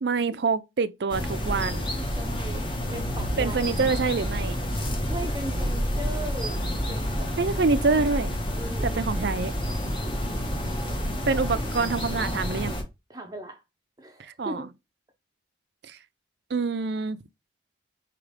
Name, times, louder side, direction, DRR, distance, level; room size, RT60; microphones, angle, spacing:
voice 1, 0.0-1.9 3.4-4.6 7.4-8.3 8.8-9.5 11.3-12.8 14.4-14.7 15.9-16.0 16.5-17.2, right 4 dB, 60° right, 0.5 m, -26 dB
sound 1, 1.1-12.8, equal, 25° left, 1.1 m, -29 dB
voice 2, 1.9-3.6 5.1-6.6 6.9-7.6 8.5-9.1 9.8-10.3 13.1-13.6 14.0-14.7, right 1 dB, 20° right, 0.6 m, -38 dB
5.0 x 3.0 x 3.2 m
head